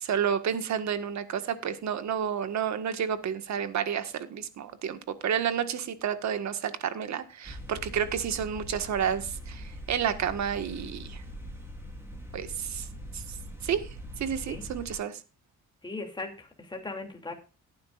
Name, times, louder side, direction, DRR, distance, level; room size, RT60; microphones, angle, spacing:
voice 1, 0.0-11.2 12.3-12.9 13.1-13.2 13.6-13.9 14.2-15.2, right 8 dB, 65° right, 1.7 m, -30 dB
sound 1, 7.4-15.0, equal, 10° right, 4.4 m, -42 dB
voice 2, 15.8-17.3, left 3 dB, 15° left, 2.9 m, -38 dB
17.5 x 9.5 x 2.5 m
cardioid pair, 90°, 30 cm